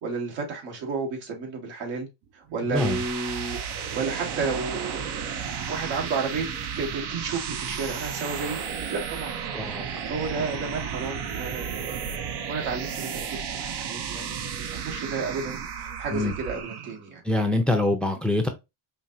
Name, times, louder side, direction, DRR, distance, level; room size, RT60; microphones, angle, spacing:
voice 1, 0.0-2.1 2.3-5.0 5.7-6.5 6.7-8.6 8.9-9.3 9.7-12.0 12.5-17.2, right 4 dB, 70° right, 1.8 m, -32 dB
sound 1, 2.5-17.0, right 7 dB, 55° right, 0.9 m, -33 dB
voice 2, 2.7-3.0 9.5-9.9 16.1-16.3 17.2-18.5, left 2 dB, ahead, 0.7 m, -24 dB
5.0 x 2.7 x 2.7 m
supercardioid pair, 85°, 48 cm